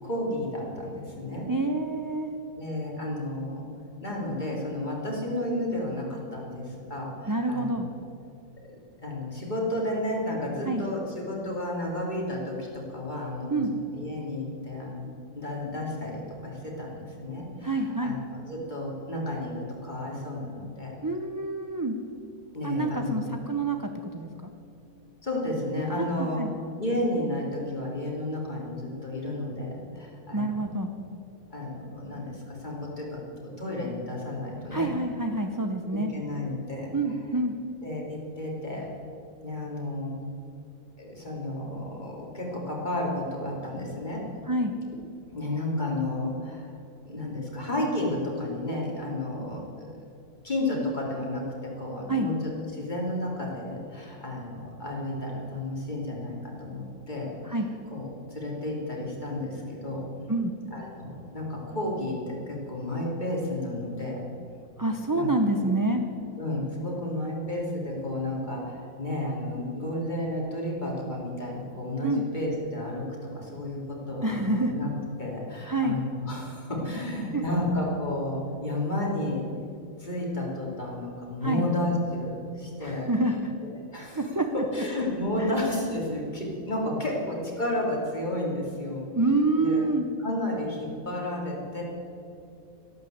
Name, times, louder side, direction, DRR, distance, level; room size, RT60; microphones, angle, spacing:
voice 1, 0.0-1.5 2.6-3.6 4.0-7.8 9.0-15.1 15.3-21.0 22.5-23.2 25.2-26.4 26.8-30.7 31.5-34.9 35.9-36.9 37.8-38.9 39.4-40.1 41.0-44.2 45.3-46.7 47.0-49.9 50.4-57.6 57.9-60.1 60.7-64.3 65.1-65.3 66.4-74.9 75.2-79.4 80.0-83.4 83.6-84.2 84.5-89.9 90.2-91.8, left 1 dB, 30° left, -3 dB, 3.4 m, -32 dB
voice 2, 1.5-2.3 7.3-7.9 10.7-10.8 13.5-13.7 17.6-18.2 21.0-22.0 22.6-24.5 26.0-26.5 30.3-30.9 34.7-36.1 36.9-37.5 44.5-44.7 52.1-52.3 57.5-57.7 60.3-60.5 64.8-66.0 72.0-72.2 74.2-74.7 75.7-76.0 77.3-77.4 81.4-81.6 82.8-83.5 84.1-84.5 85.4-85.5 89.2-90.1, right 2 dB, 20° right, 4 dB, 0.6 m, -27 dB
13.0 x 12.0 x 8.0 m, 2.6 s
omnidirectional pair, 1.5 m